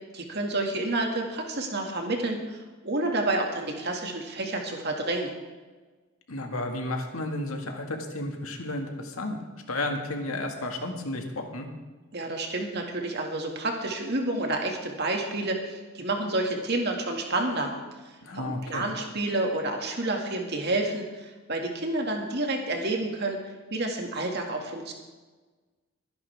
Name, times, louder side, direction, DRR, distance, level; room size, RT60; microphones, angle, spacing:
voice 1, 0.1-5.3 12.1-17.7 18.0-23.4 23.7-24.9, right 2 dB, 50° right, 2 dB, 2.2 m, -29 dB
voice 2, 6.3-9.4 9.7-11.7 18.2-18.8, left 2 dB, 80° left, 3 dB, 2.0 m, -32 dB
22.5 x 10.5 x 3.6 m, 1.3 s
head